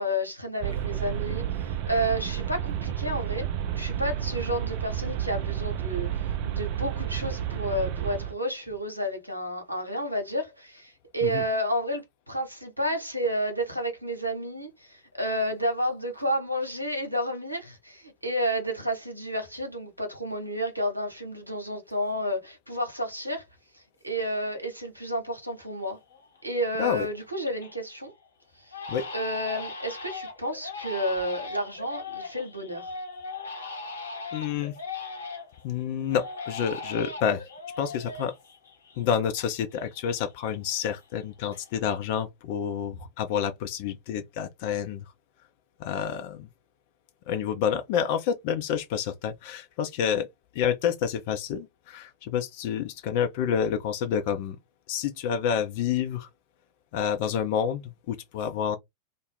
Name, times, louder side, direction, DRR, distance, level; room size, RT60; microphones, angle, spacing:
voice 1, 0.0-3.5 3.8-23.4 23.7-26.0 26.4-28.1 28.7-28.8 29.1-32.9, equal, 85° right, 0.8 m, -31 dB
sound 1, 0.6-8.3, right 10 dB, 45° right, 0.4 m, -31 dB
Crying sobbing, 25.5-25.6 26.1-26.6 27.0-27.8 28.1-28.3 28.7-35.6 36.1-39.4 39.7-41.2 41.5-42.0, left 3 dB, 75° left, 0.9 m, -39 dB
voice 2, 34.3-34.7 35.6-37.4 37.8-38.3 39.0-45.0 45.8-46.5 47.3-50.3 50.5-54.6 54.9-56.3 56.9-58.8, left 8 dB, 50° left, 0.5 m, -28 dB
2.6 x 2.0 x 3.3 m
figure-of-eight pair, 90°, 0 cm